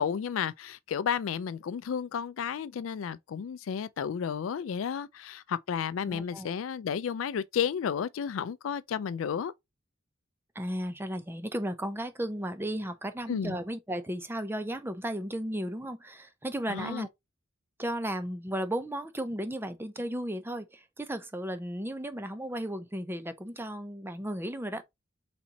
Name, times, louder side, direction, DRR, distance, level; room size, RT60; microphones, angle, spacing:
voice 1, 0.0-9.5 13.3-13.6 16.7-17.1, left 7 dB, 75° left, 0.4 m, -32 dB
voice 2, 6.1-6.5 10.5-17.1 17.8-24.8, right 1 dB, 10° right, 0.7 m, -34 dB
4.2 x 4.0 x 2.8 m
head